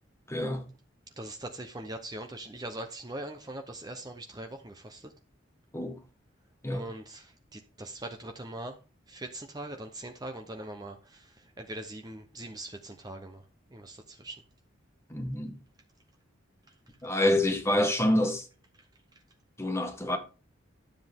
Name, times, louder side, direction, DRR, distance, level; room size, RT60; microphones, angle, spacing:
voice 1, 0.3-0.6 5.7-6.0 6.6-6.8 15.1-15.6 17.0-18.5 19.6-20.2, left 1 dB, 15° left, 1.6 m, -27 dB
voice 2, 1.2-5.1 6.7-8.8 9.1-13.4 13.7-14.4, right 1 dB, 20° right, 0.8 m, -41 dB
12.0 x 7.7 x 3.6 m
head